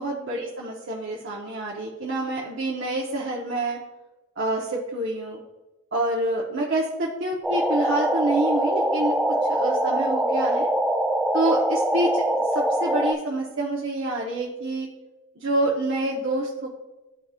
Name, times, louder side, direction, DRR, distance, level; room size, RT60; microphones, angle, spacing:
voice 1, 0.0-3.8 4.4-5.4 5.9-9.2 9.5-10.7 11.3-14.9 15.4-16.7, right 2 dB, 60° right, -4 dB, 1.1 m, -27 dB
sound 1, 7.4-13.1, right 1 dB, ahead, 0.4 m, -23 dB
12.5 x 4.2 x 2.5 m, 1.1 s
head